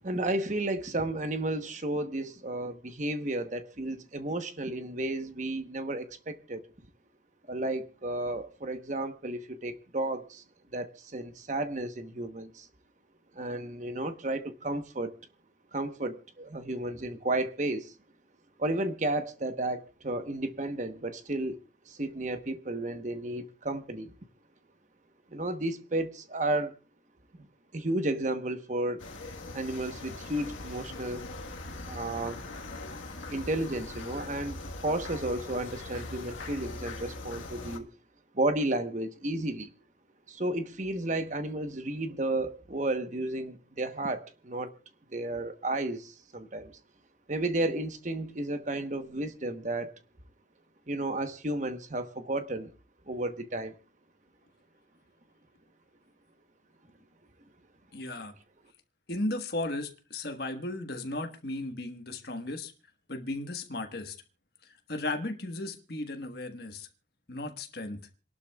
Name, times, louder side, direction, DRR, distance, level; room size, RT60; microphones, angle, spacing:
voice 1, 0.0-6.6 7.5-10.4 10.7-12.7 13.3-15.2 15.7-17.9 18.6-21.6 21.9-24.1 25.3-26.7 27.4-27.5 27.7-29.0 29.5-31.2 31.8-32.4 33.3-37.9 38.3-39.7 40.3-44.7 45.1-46.7 47.3-49.9 50.9-52.7 53.1-53.8, right 1 dB, 40° right, 1.0 m, -32 dB
sound 1, 29.0-37.8, left 2 dB, 85° left, 1.5 m, -41 dB
voice 2, 57.9-58.3 59.1-62.7 63.1-64.2 64.6-66.9 67.3-68.0, left 2 dB, 55° left, 1.4 m, -35 dB
27.5 x 12.0 x 2.3 m
head